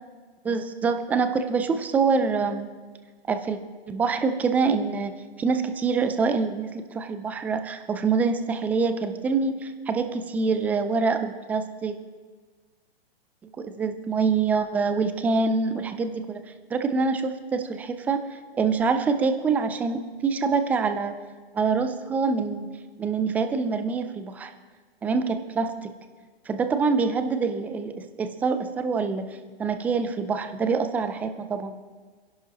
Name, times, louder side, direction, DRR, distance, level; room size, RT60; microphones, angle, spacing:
voice 1, 0.4-2.7 3.3-3.6 3.9-5.1 5.4-11.9 13.6-16.4 16.7-21.1 21.5-22.7 23.0-24.5 25.0-25.9 26.5-29.2 29.6-31.7, right 4 dB, 5° right, 8 dB, 0.3 m, -25 dB
27.0 x 11.0 x 2.9 m, 1.5 s
hypercardioid pair, 130°, 31 cm